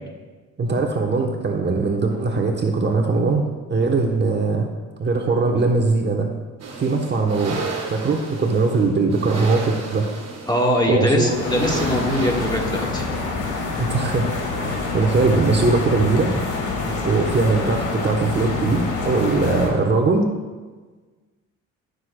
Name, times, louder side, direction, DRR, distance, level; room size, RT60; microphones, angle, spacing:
voice 1, 0.6-4.7 5.0-6.3 6.8-7.6 7.9-10.1 10.9-11.4 13.8-14.3 14.5-16.3 17.0-20.3, right 3 dB, 35° right, 2 dB, 1.0 m, -20 dB
sound 1, 6.6-13.4, right 4 dB, 60° right, 1.8 m, -33 dB
voice 2, 10.4-13.2 16.8-17.1, equal, 15° left, 0 dB, 1.5 m, -22 dB
sound 2, 11.3-19.7, left 3 dB, 85° left, 2.0 m, -27 dB
15.0 x 6.4 x 2.2 m, 1.3 s
cardioid pair, 90°, 30 cm